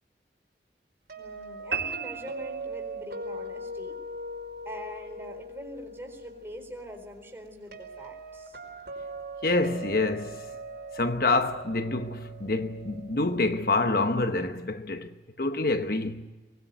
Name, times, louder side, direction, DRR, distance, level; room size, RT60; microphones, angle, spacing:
sound 1, 1.1-14.0, right 1 dB, 65° right, 5.1 m, -41 dB
voice 1, 1.2-4.0 4.6-8.6, equal, 15° right, 4.1 m, -43 dB
sound 2, 1.7-3.2, right 6 dB, 90° right, 1.8 m, -34 dB
voice 2, 9.4-10.4 10.9-16.2, left 2 dB, 55° left, 1.0 m, -27 dB
23.5 x 21.0 x 9.3 m
head